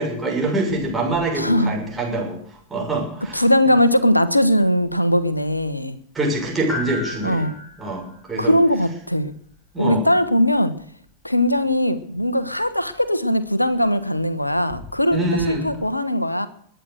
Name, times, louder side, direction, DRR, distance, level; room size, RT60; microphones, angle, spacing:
voice 1, 0.0-3.4 6.1-7.5 7.8-8.5 9.7-10.1 15.1-15.6, right 2 dB, 15° right, 0 dB, 6.5 m, -25 dB
voice 2, 1.3-1.8 3.3-6.0 7.2-7.5 8.4-9.3 9.8-10.7 11.2-16.5, equal, 85° left, 15 dB, 1.2 m, -20 dB
sound 1, 2.3-15.8, left 3 dB, 30° left, 5.6 m, -42 dB
21.5 x 9.3 x 6.5 m, 0.63 s
figure-of-eight pair, 90°, 0 cm